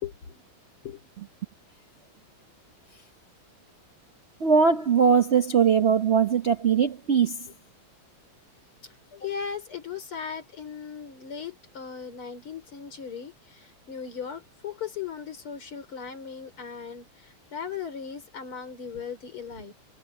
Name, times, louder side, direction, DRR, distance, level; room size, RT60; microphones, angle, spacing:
voice 1, 0.0-0.4 0.8-1.1 8.8-19.7, left 7 dB, 75° left, 4.5 m, -38 dB
voice 2, 4.4-7.4, right 6 dB, 60° right, 0.7 m, -21 dB
omnidirectional pair, 2.4 m